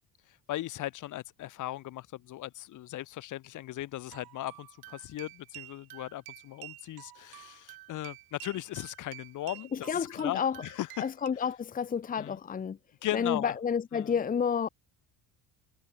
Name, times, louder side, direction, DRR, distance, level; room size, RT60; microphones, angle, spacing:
voice 1, 0.3-11.1 11.3-11.4 12.2-12.4 13.0-13.6 13.9-14.2, left 14 dB, 55° left, 2.0 m, -38 dB
sound 1, 4.1-11.3, right 19 dB, 75° right, 4.6 m, -50 dB
voice 2, 9.9-10.5 11.0-12.8 13.1-14.7, left 7 dB, 25° left, 1.1 m, -30 dB
cardioid pair, 155°, 36 cm